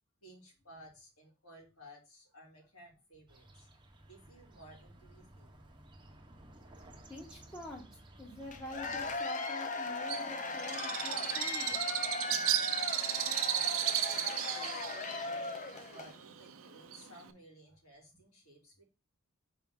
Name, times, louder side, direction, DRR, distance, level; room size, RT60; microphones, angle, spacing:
voice 1, 0.2-3.7 4.1-5.5 13.1-14.9 15.2-15.4 15.9-18.8, equal, 75° left, -2 dB, 3.1 m, -56 dB
sound 1, 3.3-9.2, right 1 dB, 20° right, 0.9 m, -56 dB
voice 2, 7.1-7.8 8.2-11.9, left 1 dB, 15° left, -2 dB, 1.1 m, -46 dB
Cheering / Applause / Crowd, 8.5-16.2, left 3 dB, 35° left, 0.6 m, -38 dB
Bird, 10.1-17.3, right 11 dB, 65° right, 0.6 m, -34 dB
6.0 x 4.7 x 3.6 m, 0.28 s
head